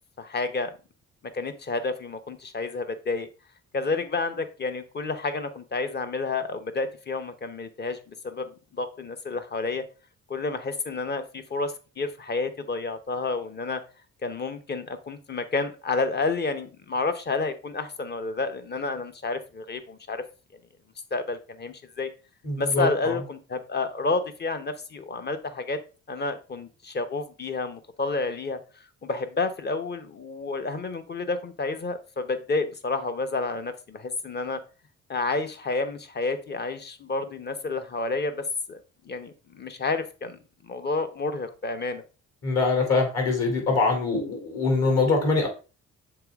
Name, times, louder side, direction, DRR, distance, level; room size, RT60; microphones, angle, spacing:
voice 1, 0.2-0.7 1.3-3.3 3.7-9.8 10.3-13.8 14.2-20.2 21.1-22.1 22.6-25.8 26.1-28.6 29.0-34.6 35.1-42.0, left 3 dB, 35° left, 9 dB, 0.9 m, -30 dB
voice 2, 22.4-23.2 42.4-45.5, left 3 dB, 55° left, 2 dB, 2.9 m, -23 dB
6.7 x 4.0 x 3.5 m, 0.34 s
cardioid pair, 90°, 30 cm